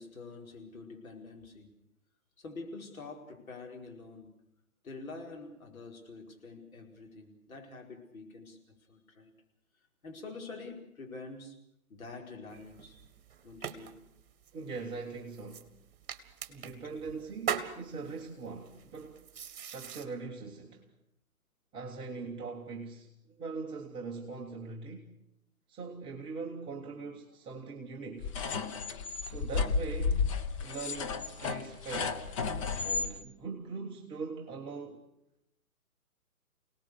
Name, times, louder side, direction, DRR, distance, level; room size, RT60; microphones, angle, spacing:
voice 1, 0.0-1.7 2.4-4.3 4.8-9.4 10.0-11.6 11.9-13.0 13.4-14.0, left 3 dB, 65° left, 4.9 m, -46 dB
sound 1, 12.5-20.0, right 8 dB, 40° right, 2.0 m, -42 dB
voice 2, 14.5-15.7 16.5-19.2 19.6-20.9 21.7-25.1 25.7-28.4 29.3-32.3 32.8-35.0, right 4 dB, 10° right, 1.0 m, -41 dB
sound 2, 28.2-33.1, left 5 dB, 20° left, 0.8 m, -32 dB
27.5 x 18.5 x 6.6 m
figure-of-eight pair, 135°, 45 cm